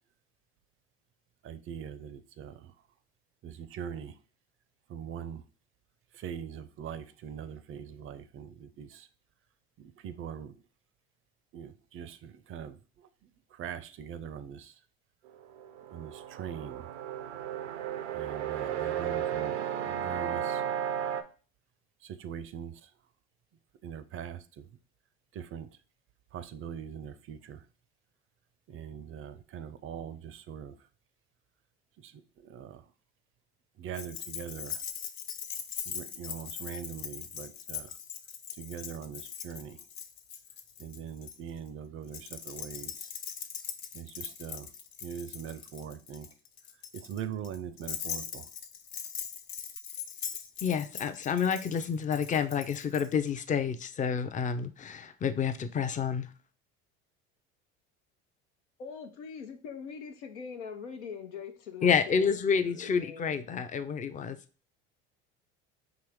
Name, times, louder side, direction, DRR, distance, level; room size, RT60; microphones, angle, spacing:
voice 1, 1.4-2.7 3.4-4.2 4.9-5.4 6.1-9.1 9.8-10.6 11.5-13.1 13.5-14.7 15.9-16.9 18.1-20.8 22.0-22.9 23.8-24.7 25.3-25.7 26.3-27.6 28.7-30.8 32.0-32.8 33.8-34.8 35.9-37.9 38.6-39.8 40.8-43.1 43.9-44.7 45.0-46.3 46.9-48.5, right 8 dB, 40° right, 0.5 m, -42 dB
sound 1, 15.3-21.2, right 9 dB, 85° right, 0.6 m, -34 dB
Keys jangling, 33.9-41.4 42.1-53.1, left 8 dB, 55° left, 0.7 m, -41 dB
voice 2, 50.6-56.3 61.8-64.4, left 6 dB, 25° left, 0.5 m, -29 dB
voice 3, 58.8-63.4, left 6 dB, 90° left, 0.8 m, -43 dB
4.6 x 3.0 x 3.5 m
hypercardioid pair, 80°, 34 cm